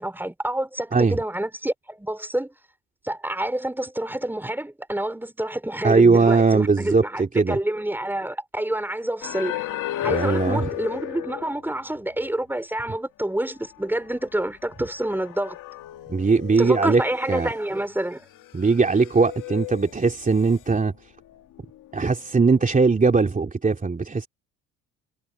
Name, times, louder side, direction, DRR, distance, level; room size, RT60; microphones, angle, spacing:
voice 1, 0.0-2.5 3.0-9.5 10.0-15.6 16.6-18.3, right 1 dB, 5° right, 4.4 m, -28 dB
voice 2, 5.8-7.6 10.1-10.7 16.1-17.0 17.3-17.5 18.5-20.9 21.9-24.3, right 4 dB, 25° right, 2.9 m, -20 dB
sound 1, 9.2-11.9 12.2-12.3 14.0-14.1 14.7-17.7 18.3-20.6 21.6-22.1 22.5-22.7, left 14 dB, 70° left, 2.3 m, -34 dB
supercardioid pair, 75°, 33 cm